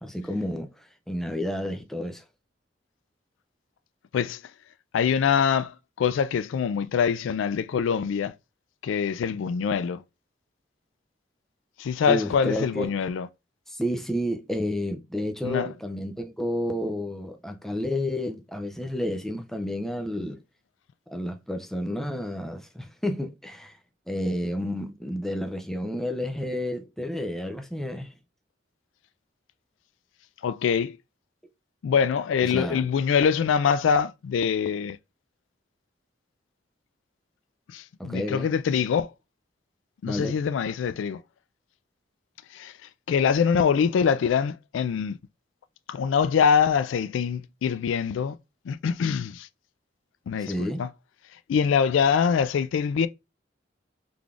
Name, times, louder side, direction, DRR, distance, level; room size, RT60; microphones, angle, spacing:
voice 1, 0.0-2.2 12.1-12.9 13.7-20.4 21.1-23.8 24.1-28.1 32.4-32.8 38.0-38.5 40.0-40.4 50.4-50.8, left 1 dB, ahead, 0.4 m, -30 dB
voice 2, 4.9-8.3 8.8-10.0 11.8-13.3 15.4-15.7 30.4-31.0 31.8-35.0 37.7-39.1 40.0-41.2 42.5-42.7 43.1-45.2 45.9-48.4 48.7-49.5 50.3-50.9 51.5-53.1, left 7 dB, 90° left, 0.3 m, -24 dB
3.8 x 3.3 x 2.3 m
head